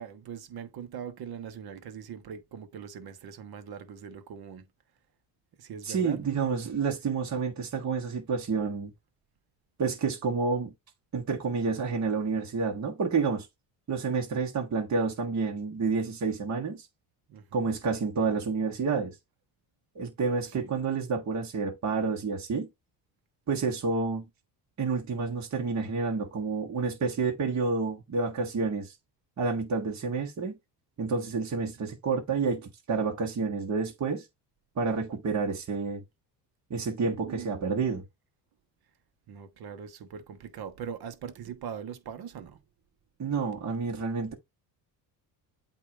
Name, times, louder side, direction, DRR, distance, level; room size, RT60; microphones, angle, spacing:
voice 1, 0.0-4.7 5.6-6.2 17.3-17.7 20.5-20.7 37.1-37.9 39.3-42.6, right 7 dB, 55° right, 1.3 m, -41 dB
voice 2, 5.8-8.9 9.8-10.7 11.1-13.5 13.9-16.9 17.5-19.1 19.9-22.7 23.5-24.2 24.8-28.9 29.4-30.6 31.0-34.3 34.8-36.0 36.7-38.0 43.2-44.3, right 4 dB, 40° right, 1.6 m, -29 dB
8.4 x 2.9 x 4.8 m
cardioid pair, 95°, 44 cm